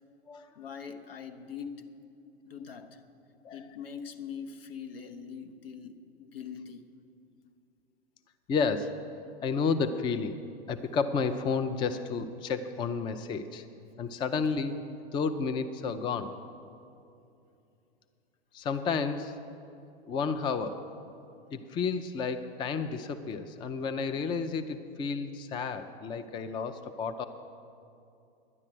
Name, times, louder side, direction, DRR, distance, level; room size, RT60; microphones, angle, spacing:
voice 1, 0.5-1.9 2.4-3.0 3.5-6.8, left 7 dB, 65° left, 7 dB, 1.1 m, -42 dB
voice 2, 8.5-9.0 9.4-10.4 10.7-13.6 14.0-14.8 15.1-16.3 18.5-19.4 20.1-20.8 21.5-27.3, left 5 dB, 15° left, 10 dB, 0.4 m, -31 dB
11.0 x 10.5 x 7.6 m, 2.7 s
figure-of-eight pair, 95°, 30 cm